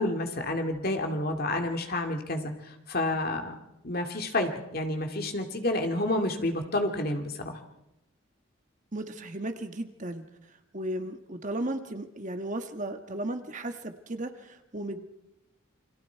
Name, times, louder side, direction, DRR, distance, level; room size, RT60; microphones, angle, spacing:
voice 1, 0.0-3.5 3.8-7.6, left 1 dB, 45° left, 4 dB, 2.3 m, -29 dB
voice 2, 8.9-10.2 10.7-15.1, right 1 dB, 35° right, 6 dB, 1.5 m, -35 dB
29.0 x 22.5 x 4.6 m, 0.87 s
head